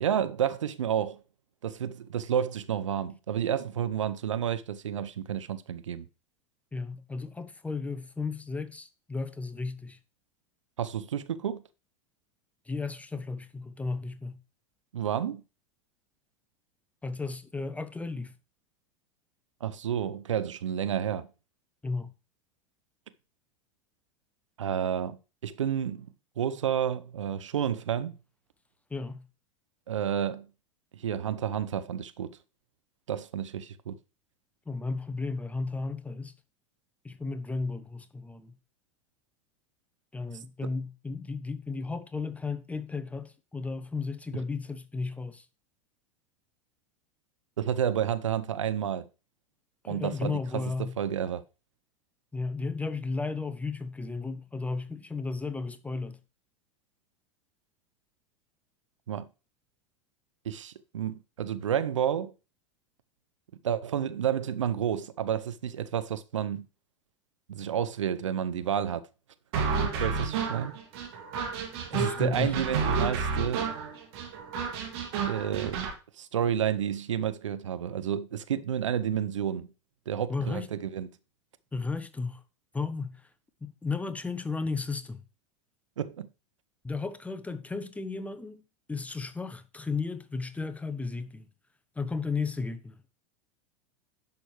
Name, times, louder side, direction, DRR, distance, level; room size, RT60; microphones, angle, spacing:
voice 1, 0.0-1.2 1.6-6.1 10.8-11.6 14.9-15.4 19.6-21.3 24.6-26.1 26.4-28.2 29.9-30.5 30.9-32.4 33.1-34.0 40.6-40.7 47.6-49.1 49.9-51.4 59.1-59.3 60.4-62.3 63.6-66.7 67.5-69.0 69.6-70.8 71.9-73.7 75.3-75.9 76.2-79.7 80.1-81.1 86.0-86.3, right 9 dB, 75° right, 0.6 m, -30 dB
voice 2, 6.7-10.0 12.7-14.4 17.0-18.3 21.8-22.1 28.9-29.3 34.7-36.3 37.0-38.5 40.1-45.5 49.8-51.0 52.3-56.2 71.9-72.5 80.3-80.7 81.7-82.4 82.7-83.2 83.6-85.2 86.8-88.6 88.9-91.5 92.0-93.1, left 4 dB, 10° left, 0.8 m, -34 dB
sound 1, 69.5-75.9, right 5 dB, 55° right, 2.5 m, -31 dB
10.5 x 6.2 x 3.3 m
figure-of-eight pair, 85°, 16 cm